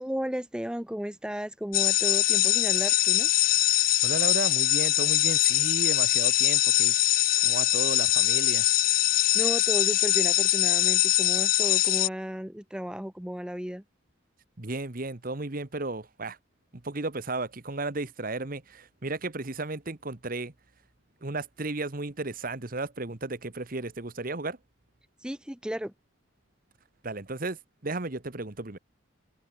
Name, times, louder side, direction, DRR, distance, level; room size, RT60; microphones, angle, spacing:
voice 1, 0.0-3.3 9.3-13.8 25.2-25.9, equal, 5° right, 0.7 m, -34 dB
sound 1, 1.7-12.1, left 15 dB, 45° left, 0.5 m, -23 dB
voice 2, 4.0-6.9 7.4-8.7 14.6-16.4 16.8-20.5 21.2-24.6 27.0-27.6 27.8-28.8, right 2 dB, 45° right, 1.3 m, -34 dB
open air
head